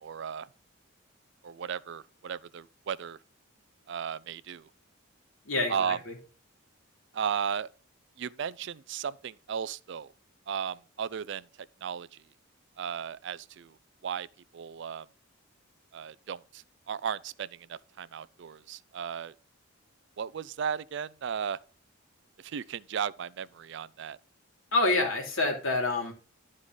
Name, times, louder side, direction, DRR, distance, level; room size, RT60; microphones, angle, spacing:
voice 1, 0.0-0.5 1.4-3.2 3.9-4.7 5.7-6.0 7.1-7.7 8.2-10.1 10.5-11.5 11.8-12.2 12.8-13.8 14.0-14.3 14.5-15.1 15.9-19.3 20.2-21.6 22.4-24.2, right 7 dB, 55° right, 0.4 m, -35 dB
voice 2, 5.4-6.1 24.7-26.1, left 2 dB, 75° left, 3.0 m, -27 dB
11.5 x 4.8 x 3.9 m
head